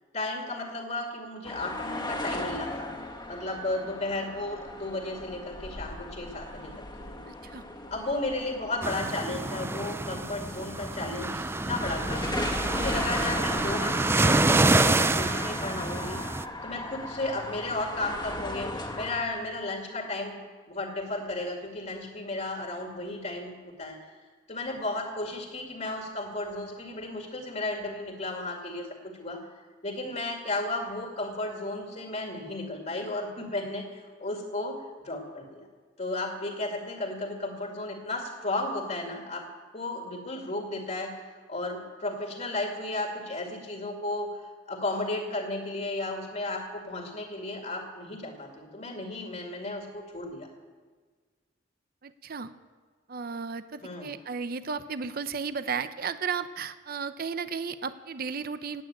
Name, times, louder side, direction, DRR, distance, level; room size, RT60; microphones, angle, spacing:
voice 1, 0.1-2.9 3.3-7.2 7.9-12.3 12.6-16.2 16.6-20.4 20.7-24.0 24.5-29.4 29.8-34.8 35.0-35.7 36.0-39.4 39.7-41.2 41.5-44.4 44.7-50.5 53.8-54.1, left 2 dB, 40° left, 2 dB, 2.2 m, -34 dB
sound 1, 1.4-19.2, left 1 dB, 25° left, 1.8 m, -37 dB
voice 2, 7.3-7.6 52.0-52.5 53.1-58.8, right 5 dB, 50° right, 12 dB, 0.6 m, -34 dB
sound 2, 8.8-16.4, right 2 dB, 15° right, 0.4 m, -27 dB
17.0 x 8.9 x 8.9 m, 1.5 s
head